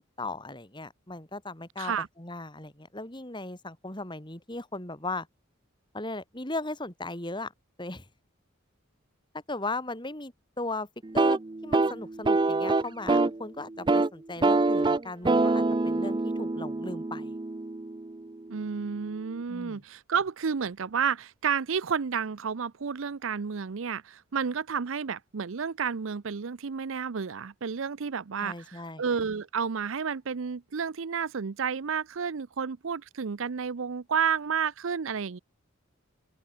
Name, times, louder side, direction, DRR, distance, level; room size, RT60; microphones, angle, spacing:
voice 1, 0.2-5.3 5.9-7.5 7.8-8.1 9.5-10.9 11.1-17.4 19.5-19.8 28.4-29.0, left 2 dB, 20° left, 3.2 m, -37 dB
sound 1, 11.0-13.4 13.7-14.1 14.4-18.3, right 3 dB, 20° right, 0.4 m, -25 dB
voice 2, 18.5-35.4, right 6 dB, 70° right, 0.6 m, -31 dB
open air
head